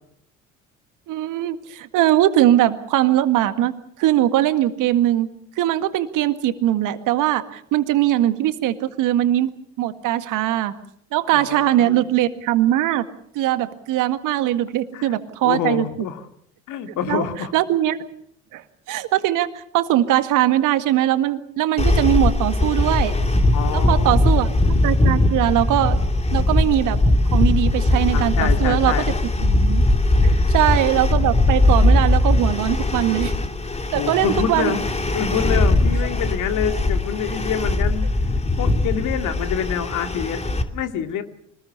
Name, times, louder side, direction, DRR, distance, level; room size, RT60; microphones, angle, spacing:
voice 1, 1.1-3.7 4.0-5.3 5.6-9.5 9.8-10.7 11.1-13.1 13.4-15.9 17.1-17.2 17.5-18.0 18.5-18.6 18.9-23.1 23.7-24.5 24.8-26.0 26.3-27.0 27.3-29.0 29.4-29.8 30.2-33.3 33.9-34.8, right 13 dB, 60° right, 10 dB, 1.9 m, -20 dB
voice 2, 11.3-12.0 14.9-16.2 16.7-17.5 23.5-24.3 28.1-29.1 30.2-30.5 33.9-34.8 35.1-38.1 38.6-40.4 40.7-41.2, left 8 dB, 55° left, 8 dB, 2.4 m, -26 dB
sound 1, 21.8-40.6, left 2 dB, 20° left, 2.8 m, -20 dB
25.5 x 20.0 x 6.8 m, 0.68 s
hypercardioid pair, 60°, 36 cm